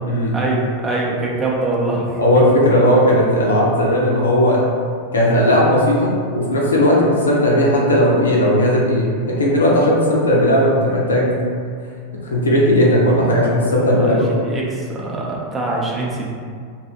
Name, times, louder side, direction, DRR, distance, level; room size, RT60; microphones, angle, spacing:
voice 1, 0.3-2.2 13.9-16.3, right 2 dB, 20° right, -4 dB, 0.5 m, -23 dB
voice 2, 2.2-4.6 5.1-11.3 12.2-14.3, equal, 70° left, -4 dB, 0.5 m, -16 dB
2.6 x 2.3 x 2.7 m, 2.1 s
figure-of-eight pair, 90°, 0 cm